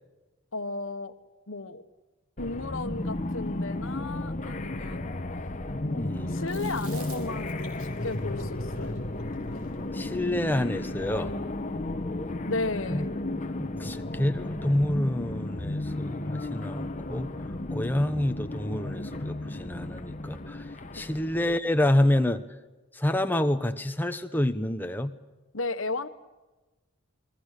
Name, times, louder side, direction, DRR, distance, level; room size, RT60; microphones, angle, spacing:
voice 1, 0.5-1.2 1.5-1.8 2.4-5.2 5.8-9.0 12.5-13.1 21.0-21.1 25.5-26.1, left 3 dB, 70° left, 9 dB, 1.4 m, -34 dB
sound 1, 2.4-21.6, left 2 dB, 35° left, 1.1 m, -34 dB
voice 2, 5.9-6.4 9.9-11.3 12.9-13.1 13.6-17.3 17.7-20.7 20.9-22.4 22.9-25.1, left 1 dB, 10° left, 8 dB, 1.0 m, -28 dB
Chewing mastication, 6.5-10.9, right 2 dB, 85° right, 6.3 m, -49 dB
29.5 x 22.0 x 6.7 m, 1.1 s
head